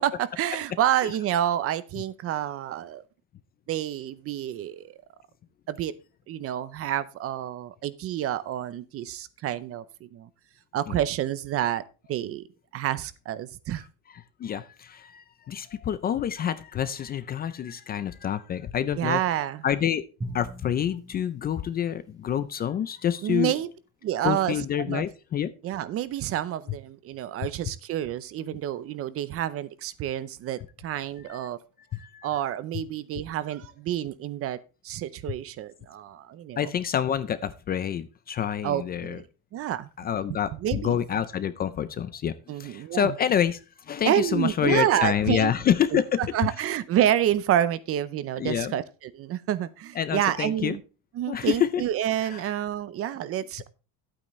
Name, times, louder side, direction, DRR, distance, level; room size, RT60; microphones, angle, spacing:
voice 1, 0.0-3.0 3.7-4.9 5.7-5.9 6.3-10.3 10.7-11.8 12.1-12.4 12.7-13.8 19.0-19.6 23.2-23.7 24.0-24.6 24.9-25.0 25.6-31.6 32.2-34.6 34.8-36.7 38.6-39.3 39.5-39.9 40.3-41.0 42.5-43.2 44.0-45.5 45.9-50.8 51.1-53.7, right 11 dB, 40° right, 0.6 m, -28 dB
voice 2, 14.4-19.2 19.6-20.0 20.3-23.5 24.2-25.5 31.3-31.4 31.9-32.3 36.6-39.2 40.0-42.3 42.6-43.6 43.9-46.2 48.4-48.8 50.0-50.8 51.3-51.8, left 9 dB, 25° left, 0.4 m, -27 dB
Drum, 20.2-22.6, right 1 dB, 10° right, 1.0 m, -41 dB
12.0 x 8.7 x 3.1 m
cardioid pair, 175°, 35 cm